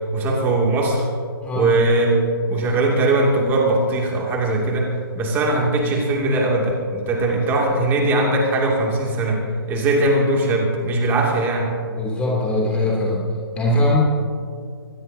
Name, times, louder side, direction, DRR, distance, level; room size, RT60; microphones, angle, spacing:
voice 1, 0.1-1.0 1.5-4.9 5.1-9.4 9.7-11.7, right 2 dB, 15° right, -1 dB, 2.6 m, -20 dB
voice 2, 1.4-1.8 11.9-13.2 13.6-14.0, left 1 dB, 10° left, -4 dB, 2.9 m, -21 dB
23.0 x 20.0 x 2.8 m, 2.3 s
hypercardioid pair, 155°, 13 cm